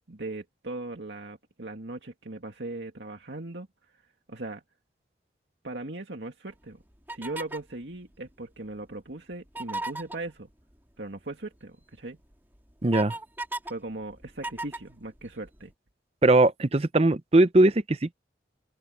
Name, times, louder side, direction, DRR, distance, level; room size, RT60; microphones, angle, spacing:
voice 1, 0.1-3.7 4.3-4.6 5.6-6.8 7.1-10.5 11.0-12.2 13.7-15.7, right 2 dB, 75° right, 2.1 m, -38 dB
sound 1, 7.1-7.7 9.5-10.2 11.8-11.9 12.3-13.7 14.0-15.6, right 2 dB, 10° right, 2.9 m, -35 dB
voice 2, 12.8-13.1 16.2-18.1, right 2 dB, 35° right, 0.7 m, -20 dB
open air
head